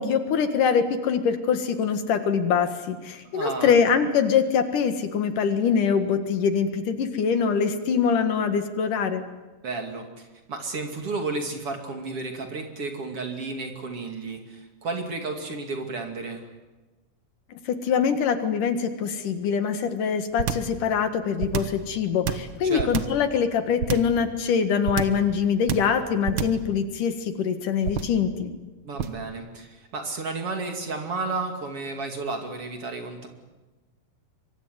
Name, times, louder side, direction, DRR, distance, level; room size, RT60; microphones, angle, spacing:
voice 1, 0.0-9.2 17.7-28.5, left 6 dB, 70° left, 8 dB, 3.1 m, -24 dB
voice 2, 3.3-3.7 9.6-16.4 22.6-22.9 28.8-33.3, right 3 dB, 45° right, 4 dB, 3.3 m, -32 dB
sound 1, 20.4-20.8 21.4-21.8 22.2-23.2 23.8-24.2 24.9-25.3 25.7-26.0 26.3-26.7 27.8-28.2 29.0-29.3, right 8 dB, 70° right, 1.1 m, -27 dB
24.5 x 24.0 x 9.5 m, 1.1 s
omnidirectional pair, 4.0 m